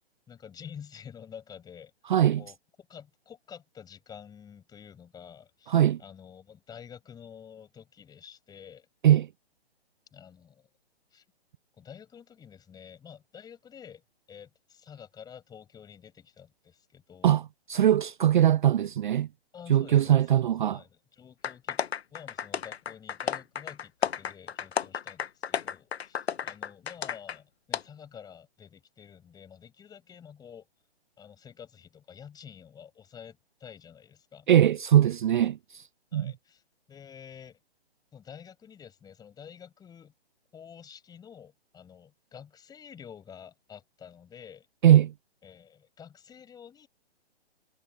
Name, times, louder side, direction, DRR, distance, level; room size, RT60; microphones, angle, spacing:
voice 1, 0.3-1.9 2.4-8.9 10.1-10.7 11.1-11.2 11.8-14.0 14.3-17.4 19.5-21.8 22.1-30.7 31.2-34.5 36.1-36.6 36.9-37.6 38.1-40.1 40.5-44.7 45.4-46.9, left 8 dB, 10° left, 7.4 m, -49 dB
voice 2, 2.1-2.4 5.7-6.0 9.0-9.3 17.2-17.4 17.7-19.3 19.7-20.8 34.5-35.9 36.1-36.3 44.8-45.1, right 11 dB, 50° right, 0.4 m, -21 dB
sound 1, 21.4-27.4 27.7-27.8, left 7 dB, 70° left, 1.5 m, -33 dB
hypercardioid pair, 145°, 32 cm